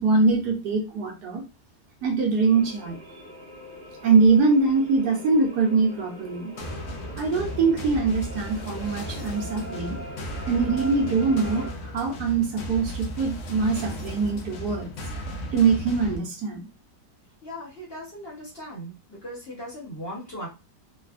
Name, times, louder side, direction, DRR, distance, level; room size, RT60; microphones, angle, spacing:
voice 1, 0.0-1.4 2.0-3.0 4.0-6.5 7.2-10.0 10.5-14.9 15.5-16.7, right 4 dB, 70° right, 2 dB, 1.2 m, -23 dB
sound 1, 2.4-11.7, equal, 50° right, 1.4 m, -42 dB
sound 2, 6.6-16.2, equal, 65° left, 0.8 m, -35 dB
voice 2, 17.4-20.5, equal, 40° left, -5 dB, 1.0 m, -38 dB
3.2 x 2.1 x 2.4 m, 0.29 s
omnidirectional pair, 1.8 m